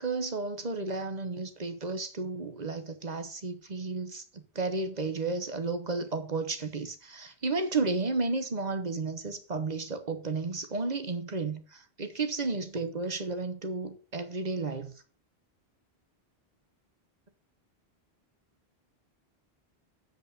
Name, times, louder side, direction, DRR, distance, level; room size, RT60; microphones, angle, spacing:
voice 1, 0.0-14.9, right 3 dB, 45° right, 1.1 m, -33 dB
8.0 x 5.2 x 6.7 m
omnidirectional pair, 1.1 m